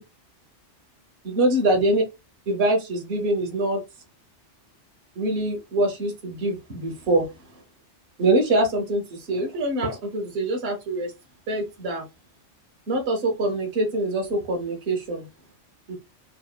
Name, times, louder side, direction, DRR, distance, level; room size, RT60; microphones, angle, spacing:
voice 1, 1.2-2.0 2.5-3.8 5.2-7.3 8.2-11.1 11.5-12.0 12.9-15.2 15.9-16.0, right 1 dB, 60° right, 0.9 m, -24 dB
2.8 x 2.1 x 2.2 m
omnidirectional pair, 1.2 m